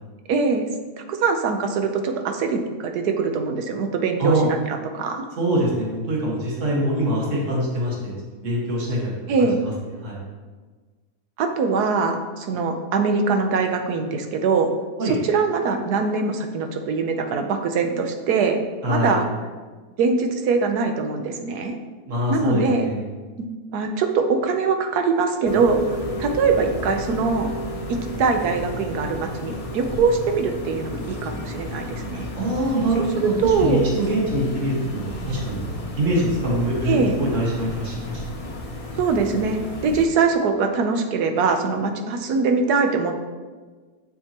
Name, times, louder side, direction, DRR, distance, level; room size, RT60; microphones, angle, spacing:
voice 1, 0.3-0.6 1.1-5.2 9.3-9.6 11.4-14.7 15.0-18.6 18.9-19.2 20.0-21.8 22.3-22.8 23.4-23.5 23.7-25.8 26.2-27.5 27.9-32.3 33.2-33.9 36.9-37.2 39.0-43.1, right 4 dB, 80° right, 5 dB, 1.3 m, -22 dB
voice 2, 5.4-9.5 10.0-10.2 15.0-15.2 18.8-19.2 22.1-23.0 32.3-35.6 36.0-38.2, right 1 dB, 50° right, -4 dB, 2.0 m, -24 dB
sound 1, 25.5-40.1, left 1 dB, 40° left, 0.5 m, -32 dB
7.4 x 6.9 x 2.9 m, 1.4 s
omnidirectional pair, 1.7 m